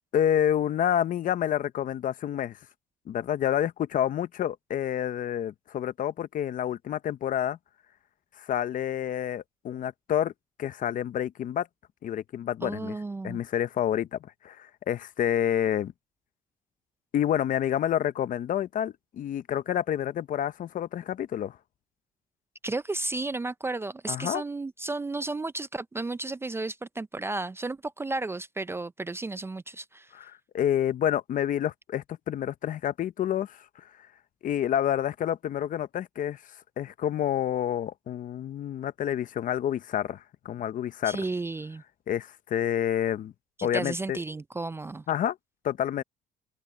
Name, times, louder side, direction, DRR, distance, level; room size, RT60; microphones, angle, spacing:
voice 1, 0.1-2.6 3.1-7.6 8.4-10.3 10.6-11.7 12.0-13.0 13.2-14.2 14.4-15.9 17.1-21.6 24.1-24.4 30.1-33.6 34.4-36.4 36.8-41.2 42.1-43.3 43.6-44.2 45.1-45.4 45.6-46.0, left 10 dB, 50° left, 0.8 m, -28 dB
voice 2, 12.6-13.4 22.6-30.1 41.1-41.8 43.6-45.0, right 2 dB, 15° right, 0.4 m, -33 dB
open air
cardioid pair, 110°, 17 cm